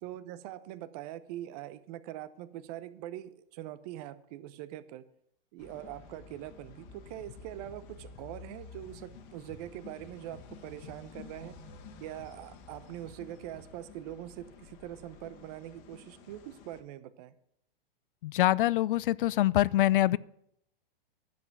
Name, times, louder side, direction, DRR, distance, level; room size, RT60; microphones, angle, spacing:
voice 1, 0.0-5.0 5.5-11.5 12.0-17.3, right 13 dB, 40° right, 15 dB, 0.8 m, -43 dB
sound 1, 5.6-16.8, left 5 dB, 40° left, 1.6 m, -51 dB
voice 2, 18.2-20.2, left 15 dB, 65° left, 22 dB, 0.4 m, -25 dB
10.5 x 7.9 x 6.0 m, 0.75 s
hypercardioid pair, 125°, 29 cm